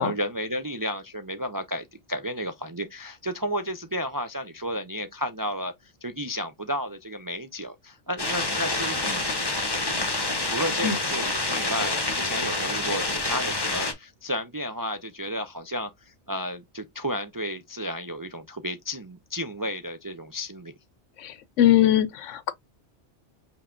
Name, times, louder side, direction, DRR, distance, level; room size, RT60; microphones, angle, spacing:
voice 1, 0.0-9.2 10.4-20.7, equal, 35° right, 0.3 m, -32 dB
sound 1, 8.2-13.9, left 2 dB, 20° left, 0.9 m, -27 dB
voice 2, 21.2-22.5, left 12 dB, 85° left, 1.0 m, -21 dB
5.5 x 3.4 x 2.5 m
omnidirectional pair, 1.2 m